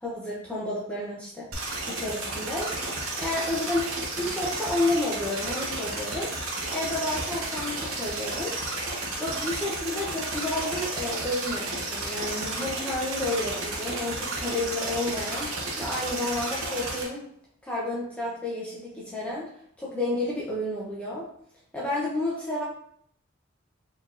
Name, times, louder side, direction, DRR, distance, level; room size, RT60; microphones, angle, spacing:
voice 1, 0.0-1.5 1.9-2.7 3.0-6.3 6.7-8.5 9.2-15.5 15.8-17.3 17.6-19.5 19.8-21.3 21.7-22.7, left 2 dB, 5° left, -6 dB, 0.7 m, -31 dB
sound 1, 1.5-17.0, right 2 dB, 90° right, 0.9 m, -32 dB
4.4 x 3.4 x 2.5 m, 0.67 s
head